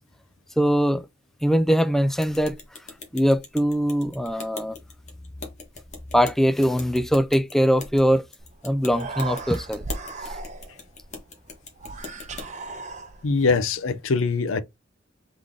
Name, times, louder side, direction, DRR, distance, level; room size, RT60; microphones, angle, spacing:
voice 1, 0.6-1.1 1.4-2.5 3.1-4.8 6.1-8.2 8.6-9.8 10.2-10.4, equal, ahead, 0.3 m, -21 dB
sound 1, 2.2-12.5, left 4 dB, 35° left, 1.3 m, -41 dB
Human voice, 8.4-8.5 8.8-10.9 11.8-13.5, right 3 dB, 35° right, 0.7 m, -36 dB
voice 2, 13.2-14.6, left 4 dB, 75° left, 0.6 m, -22 dB
3.8 x 3.4 x 3.6 m
head